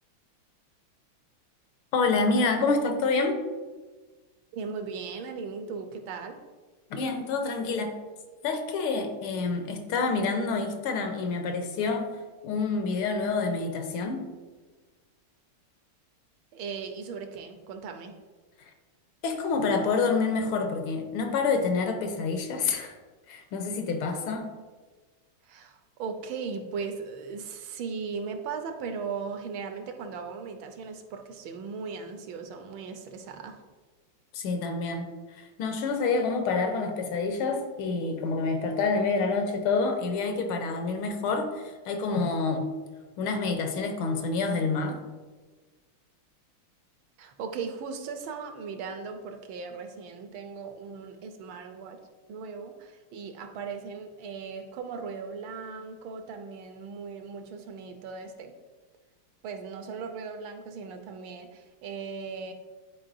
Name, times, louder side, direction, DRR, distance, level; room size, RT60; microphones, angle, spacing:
voice 1, 1.9-3.4 6.9-8.0 8.4-12.1 12.4-14.3 19.2-23.0 23.3-24.5 34.3-42.7 43.2-45.0, left 4 dB, 80° left, 6 dB, 1.6 m, -27 dB
voice 2, 4.5-6.4 16.5-18.2 25.4-33.6 47.2-52.0 52.3-58.5 59.4-62.5, right 5 dB, 80° right, 6 dB, 1.4 m, -38 dB
10.0 x 4.5 x 2.6 m, 1.3 s
omnidirectional pair, 2.3 m